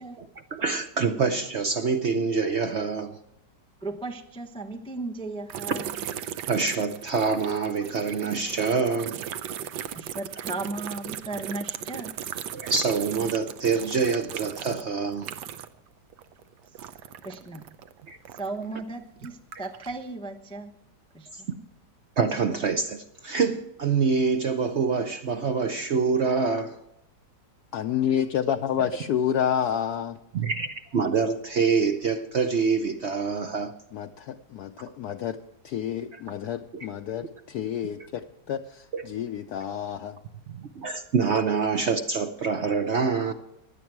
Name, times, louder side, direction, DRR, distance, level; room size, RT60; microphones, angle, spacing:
voice 1, 0.2-3.2 6.5-9.2 12.5-15.3 18.1-18.2 21.3-21.6 22.2-26.8 30.3-33.7 36.7-36.9 38.9-39.1 40.5-43.3, right 5 dB, 55° right, 0.8 m, -26 dB
voice 2, 3.8-5.9 9.9-12.2 16.8-16.9 17.2-17.8 18.3-20.8 21.1-21.5, right 2 dB, 5° left, 0.4 m, -36 dB
sound 1, 5.5-18.7 19.2-20.0, right 10 dB, 75° right, 1.3 m, -37 dB
voice 3, 27.7-30.2 33.9-35.4 35.6-40.2, left 9 dB, 70° left, 1.1 m, -29 dB
16.5 x 10.5 x 4.6 m
omnidirectional pair, 1.9 m